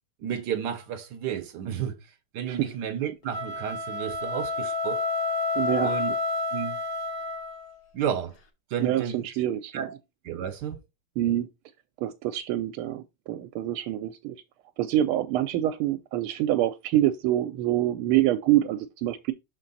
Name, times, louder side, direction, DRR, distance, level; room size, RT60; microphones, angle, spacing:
voice 1, 0.2-5.0 5.8-6.2 6.5-6.8 7.9-8.4 8.7-9.3 9.7-10.0 10.2-10.8, right 8 dB, 70° right, 1.0 m, -32 dB
sound 1, 3.2-7.8, left 3 dB, 55° left, 1.5 m, -29 dB
voice 2, 5.6-5.9 8.8-9.9 11.2-11.5 12.0-14.3 14.8-19.3, right 13 dB, 85° right, 1.5 m, -26 dB
5.9 x 4.4 x 3.9 m
omnidirectional pair, 2.4 m